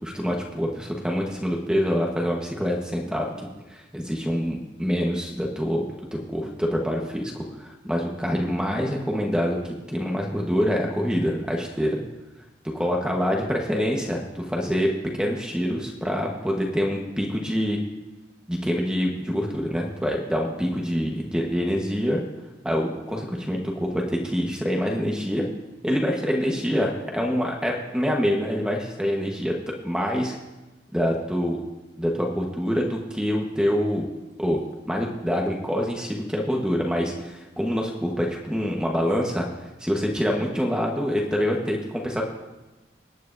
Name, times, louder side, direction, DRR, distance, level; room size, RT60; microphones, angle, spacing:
voice 1, 0.0-3.3 3.7-12.0 12.7-17.8 18.5-22.2 22.6-25.5 25.8-30.4 30.9-31.6 32.0-34.1 34.4-34.6 34.8-39.5 39.8-42.2, equal, 5° right, -1 dB, 1.2 m, -26 dB
22.0 x 9.5 x 2.7 m, 1.1 s
head